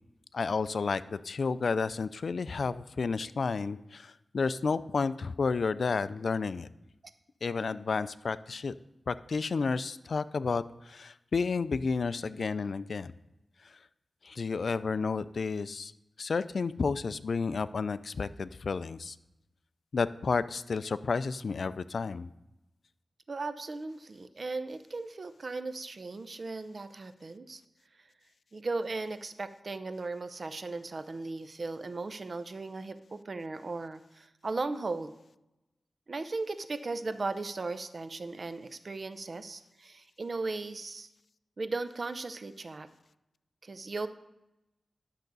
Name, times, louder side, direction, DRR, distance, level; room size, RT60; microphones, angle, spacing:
voice 1, 0.3-6.7 7.4-8.7 9.1-13.1 13.6-13.7 14.2-15.9 16.2-19.2 19.9-22.3, left 4 dB, 70° left, 15 dB, 0.3 m, -31 dB
voice 2, 23.3-27.6 28.0-28.1 28.5-35.1 36.1-41.1 41.6-42.9 43.6-44.1, right 3 dB, 55° right, 11 dB, 0.6 m, -37 dB
11.5 x 6.5 x 4.0 m, 0.93 s
wide cardioid pair, 70°, 0 cm